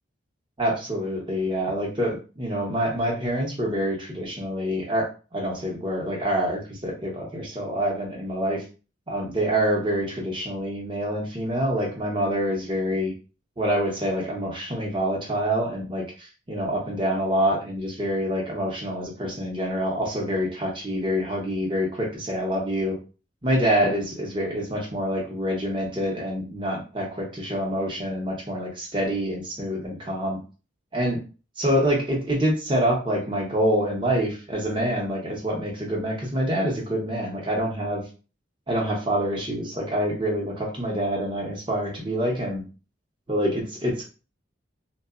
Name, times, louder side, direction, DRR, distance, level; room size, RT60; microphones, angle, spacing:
voice 1, 0.6-8.6 9.1-13.1 13.6-23.0 23.4-30.4 30.9-31.2 31.6-38.0 38.7-42.6 43.3-44.0, equal, 25° right, -1 dB, 0.8 m, -26 dB
2.8 x 2.2 x 2.4 m, 0.34 s
head